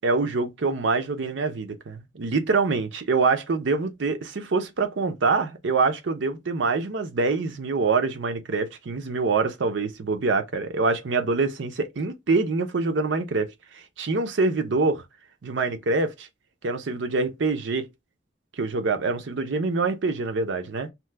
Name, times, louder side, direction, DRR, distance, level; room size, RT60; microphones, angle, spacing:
voice 1, 0.0-13.5 14.0-15.0 15.4-16.3 16.6-17.9 18.6-20.9, right 4 dB, 70° right, 0.6 m, -25 dB
2.9 x 2.2 x 3.3 m
head